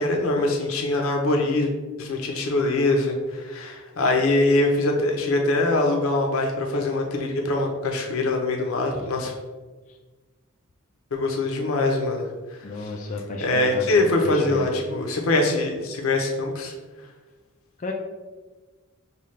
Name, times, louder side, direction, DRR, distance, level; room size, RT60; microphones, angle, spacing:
voice 1, 0.0-1.7 2.0-9.3 11.1-12.3 12.8-12.9 13.4-16.7, left 2 dB, 75° left, 1 dB, 0.7 m, -23 dB
voice 2, 12.6-14.7 17.8-17.9, left 2 dB, 35° left, 0 dB, 0.4 m, -33 dB
5.5 x 2.3 x 3.1 m, 1.3 s
head